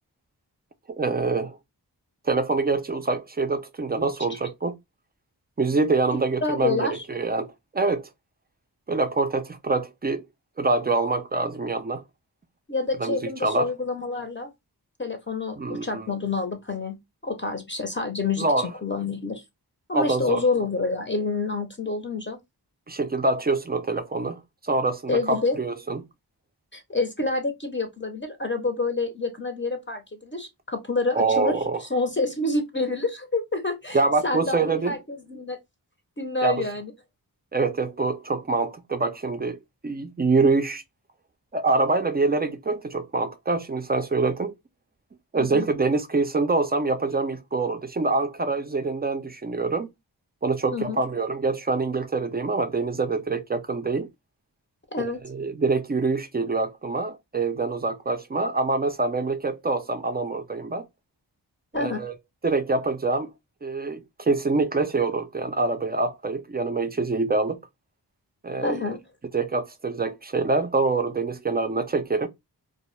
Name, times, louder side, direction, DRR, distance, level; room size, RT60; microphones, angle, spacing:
voice 1, 0.9-1.6 2.2-4.8 5.6-8.1 8.9-10.2 10.6-12.0 13.0-13.7 15.6-16.1 18.4-18.7 19.9-20.4 22.9-26.0 31.2-31.8 33.9-34.9 36.4-36.7 37.5-39.6 39.8-40.8 41.5-44.5 45.3-49.9 50.4-54.1 55.2-60.9 61.8-62.1 62.4-63.3 63.6-67.6 68.4-68.8 69.3-72.3, right 3 dB, 25° right, 0.3 m, -25 dB
voice 2, 6.4-7.0 12.7-14.5 15.0-17.0 17.2-19.4 19.9-22.4 25.1-25.6 26.7-35.6 36.2-36.9 45.3-45.7 50.7-51.0 54.9-55.2 61.7-62.0 68.6-69.0, left 3 dB, 30° left, 0.6 m, -28 dB
2.1 x 2.0 x 3.0 m
cardioid pair, 40°, 42 cm